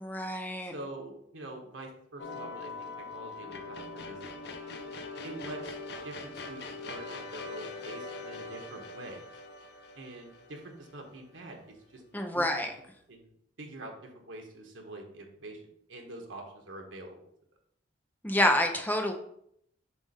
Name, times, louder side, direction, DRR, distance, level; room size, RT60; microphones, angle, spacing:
voice 1, 0.0-0.7 12.1-12.7 18.2-19.1, left 1 dB, 10° left, 4 dB, 0.6 m, -27 dB
voice 2, 0.6-4.2 5.2-5.7 6.0-9.2 9.9-12.0 12.3-12.6 13.1-13.3 13.6-15.6 15.9-17.2, right 2 dB, 90° right, 2 dB, 1.3 m, -45 dB
sound 1, 2.2-11.4, left 3 dB, 55° left, 0.7 m, -42 dB
7.1 x 2.6 x 5.5 m, 0.71 s
head